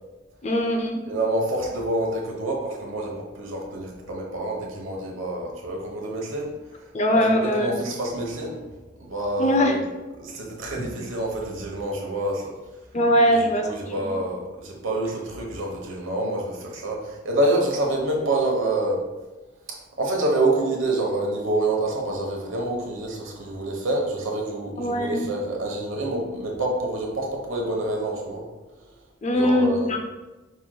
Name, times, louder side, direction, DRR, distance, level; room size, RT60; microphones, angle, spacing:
voice 1, 0.4-1.0 6.9-7.8 9.4-9.8 12.9-13.7 24.8-25.3 29.2-30.0, equal, 35° left, 3 dB, 0.5 m, -21 dB
voice 2, 1.1-8.6 9.0-9.9 10.2-12.5 13.2-19.0 20.0-28.4 29.3-29.9, right 1 dB, 75° right, 0 dB, 1.0 m, -27 dB
5.0 x 4.5 x 2.2 m, 1.1 s
head